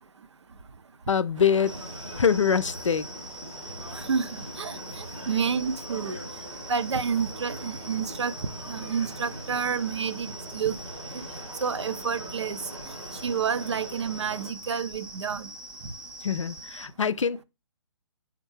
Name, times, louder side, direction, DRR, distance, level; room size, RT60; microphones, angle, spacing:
voice 1, 1.1-1.7 2.2-3.1 16.2-17.4, left 7 dB, 80° left, 0.4 m, -24 dB
sound 1, 1.3-14.5, right 1 dB, 85° right, 1.3 m, -42 dB
sound 2, 1.6-16.9, right 1 dB, 5° right, 0.3 m, -43 dB
voice 2, 4.0-6.2 6.7-8.3 8.7-10.8 11.6-12.6 13.2-15.5, right 6 dB, 65° right, 0.5 m, -29 dB
3.6 x 3.5 x 3.1 m
figure-of-eight pair, 135°, 16 cm